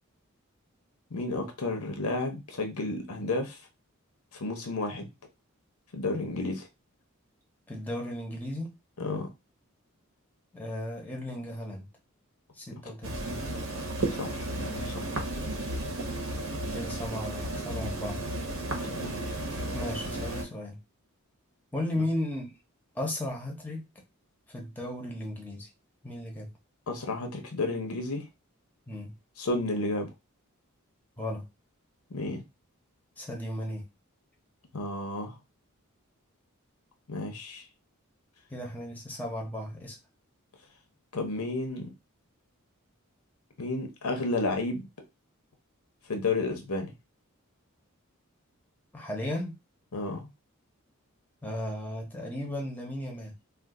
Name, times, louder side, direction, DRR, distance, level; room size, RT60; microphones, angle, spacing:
voice 1, 1.1-3.6 4.3-5.1 5.9-6.7 9.0-9.3 14.1-15.1 18.8-19.2 26.9-28.3 29.4-30.1 32.1-32.4 34.7-35.4 37.1-37.6 41.1-41.9 43.6-44.9 46.1-46.9 49.9-50.3, left 2 dB, 90° left, 0.8 m, -32 dB
voice 2, 7.7-8.7 10.5-11.9 12.5-13.5 16.7-18.2 19.7-20.8 21.7-22.5 22.9-23.8 24.5-25.7 26.0-26.5 28.9-29.1 31.2-31.5 33.2-33.9 38.5-40.0 48.9-49.6 51.4-53.3, left 1 dB, 10° left, 0.7 m, -35 dB
sound 1, 13.0-20.4, right 1 dB, 70° right, 0.9 m, -33 dB
2.5 x 2.4 x 3.6 m
head